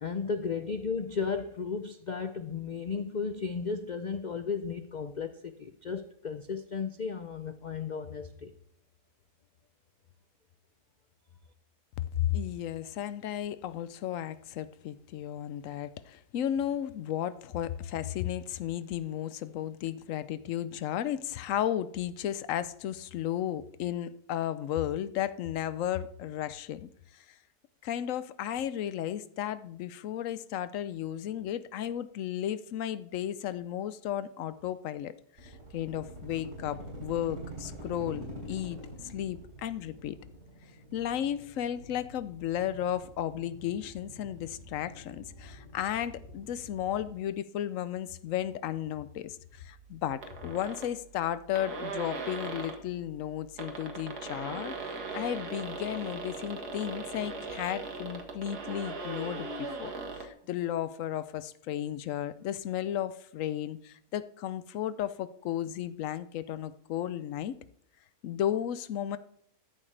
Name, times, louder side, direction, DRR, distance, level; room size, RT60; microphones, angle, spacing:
voice 1, 0.0-8.5, left 5 dB, 85° left, 10 dB, 0.4 m, -34 dB
voice 2, 12.0-27.2 27.8-35.1 35.4-40.2 40.9-59.9 60.2-67.6 68.2-69.2, left 11 dB, 65° left, 15 dB, 0.9 m, -34 dB
sound 1, 35.4-47.1, right 1 dB, 50° right, 4.0 m, -46 dB
sound 2, 50.2-50.9 51.3-51.4 51.6-52.8 53.4-60.3, right 3 dB, 80° right, 2.1 m, -39 dB
13.5 x 11.0 x 3.3 m, 0.69 s
omnidirectional pair, 1.6 m